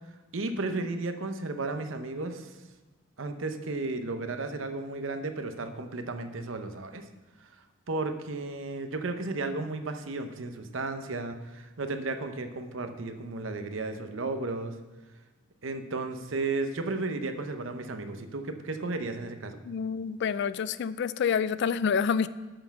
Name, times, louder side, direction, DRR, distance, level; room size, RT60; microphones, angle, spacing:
voice 1, 0.3-2.5 3.2-7.0 7.9-14.7 15.6-19.6, right 3 dB, 70° right, 8 dB, 0.7 m, -34 dB
voice 2, 19.6-22.3, left 6 dB, 55° left, 16 dB, 0.3 m, -28 dB
6.8 x 5.7 x 6.9 m, 1.2 s
head